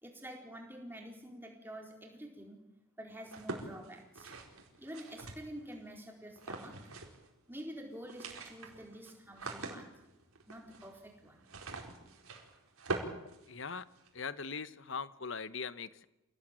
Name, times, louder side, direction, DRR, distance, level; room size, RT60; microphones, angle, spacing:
voice 1, 0.0-2.6 3.0-4.3 4.8-6.8 7.5-9.9 10.5-11.4, equal, 10° right, 1 dB, 4.3 m, -48 dB
sound 1, 3.2-5.8 6.4-7.3 7.5-7.6 7.9-14.1, right 2 dB, 80° right, 4.6 m, -44 dB
voice 2, 13.5-13.8 14.1-16.1, left 5 dB, 60° left, 15 dB, 1.0 m, -40 dB
27.0 x 17.5 x 9.1 m, 0.94 s
head